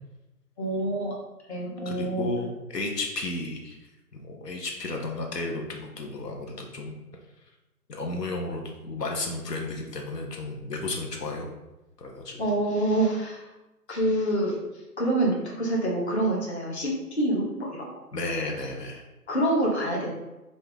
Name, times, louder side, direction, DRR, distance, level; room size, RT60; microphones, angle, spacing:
voice 1, 0.6-1.2 1.5-2.3 12.4-13.5 13.9-14.6 15.0-17.9 19.3-20.1, right 1 dB, 45° left, -3 dB, 1.2 m, -26 dB
voice 2, 1.8-3.9 4.2-6.9 7.9-11.5 12.0-12.4 18.1-19.0, left 2 dB, 85° left, 1 dB, 1.1 m, -33 dB
5.6 x 2.6 x 3.5 m, 1.0 s
hypercardioid pair, 170°, 47 cm